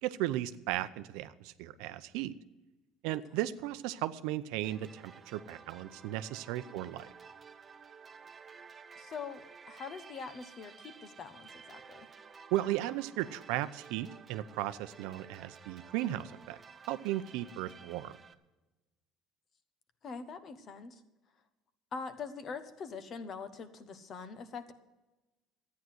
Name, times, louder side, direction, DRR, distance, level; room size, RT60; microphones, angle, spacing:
voice 1, 0.0-2.3 3.0-7.1 12.5-16.6 16.9-18.2, right 14 dB, 85° right, 13 dB, 0.7 m, -35 dB
sound 1, 4.6-18.3, right 5 dB, 20° right, 0.7 m, -53 dB
voice 2, 6.7-7.0 9.0-12.1 20.0-21.0 21.9-24.7, left 5 dB, 35° left, 11 dB, 1.1 m, -44 dB
13.0 x 9.5 x 7.8 m, 1.1 s
cardioid pair, 160°, 0 cm